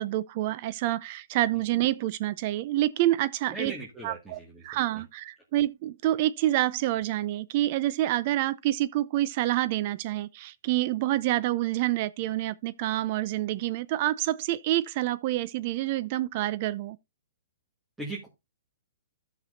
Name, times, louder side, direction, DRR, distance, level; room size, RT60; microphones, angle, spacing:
voice 1, 0.0-3.7 4.0-17.0, right 15 dB, 45° right, 0.5 m, -27 dB
voice 2, 3.5-4.7 18.0-18.3, right 2 dB, 5° right, 1.9 m, -38 dB
13.0 x 6.0 x 2.6 m
hypercardioid pair, 140°, 0 cm